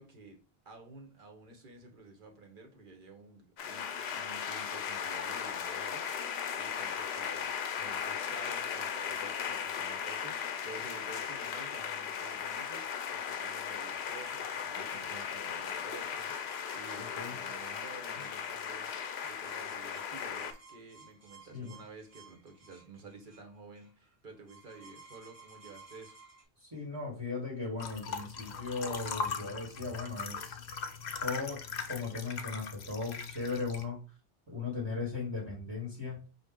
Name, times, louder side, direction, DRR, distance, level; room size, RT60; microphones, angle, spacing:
voice 1, 0.0-18.9 19.2-26.2, right 3 dB, 55° right, 1.2 m, -52 dB
sound 1, 3.6-20.5, left 7 dB, 85° left, 0.8 m, -37 dB
sound 2, 16.2-26.4, right 4 dB, 85° right, 1.7 m, -56 dB
voice 2, 17.0-17.4 21.5-21.7 26.6-30.6 31.2-34.0 34.5-36.2, left 4 dB, 25° right, 1.2 m, -37 dB
sound 3, 27.8-33.8, left 5 dB, 50° left, 0.6 m, -40 dB
5.4 x 2.4 x 3.6 m
omnidirectional pair, 1.1 m